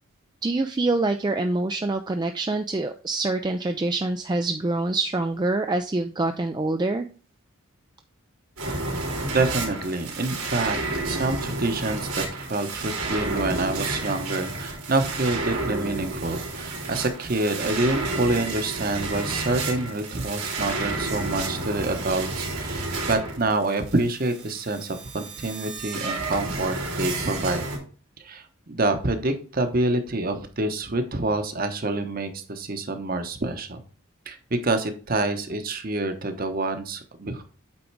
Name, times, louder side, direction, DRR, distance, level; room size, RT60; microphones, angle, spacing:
voice 1, 0.4-7.1, right 2 dB, 20° right, 6 dB, 0.3 m, -25 dB
sound 1, 8.6-27.8, right 2 dB, 90° right, 3.2 m, -31 dB
voice 2, 9.3-27.7 28.2-33.8 34.3-37.4, right 2 dB, 40° right, 8 dB, 1.0 m, -27 dB
8.6 x 3.8 x 4.6 m, 0.39 s
head